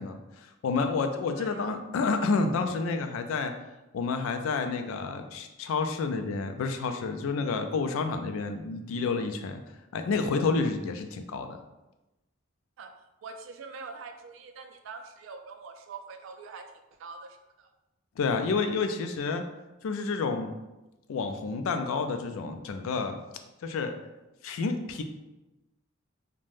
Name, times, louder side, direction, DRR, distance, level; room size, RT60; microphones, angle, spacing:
voice 1, 0.0-3.5 3.9-9.6 9.9-11.6 18.2-19.4 19.8-20.5 21.1-23.2 23.6-23.9 24.4-25.0, left 4 dB, 75° left, 7 dB, 0.3 m, -29 dB
voice 2, 1.4-1.7 12.8-12.9 13.2-16.7 17.0-17.7, right 4 dB, 65° right, 6 dB, 0.3 m, -44 dB
2.5 x 2.1 x 3.2 m, 1.0 s
head